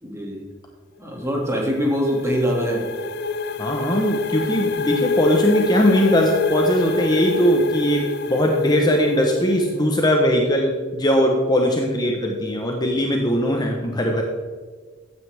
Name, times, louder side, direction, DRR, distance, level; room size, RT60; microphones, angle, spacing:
voice 1, 0.0-0.4 1.0-2.9, equal, 15° right, -1 dB, 2.4 m, -23 dB
sound 1, 1.2-9.9, left 3 dB, 55° left, 0.6 m, -27 dB
voice 2, 3.6-14.2, equal, 20° left, 1 dB, 1.1 m, -20 dB
14.5 x 9.4 x 3.6 m, 1.5 s
head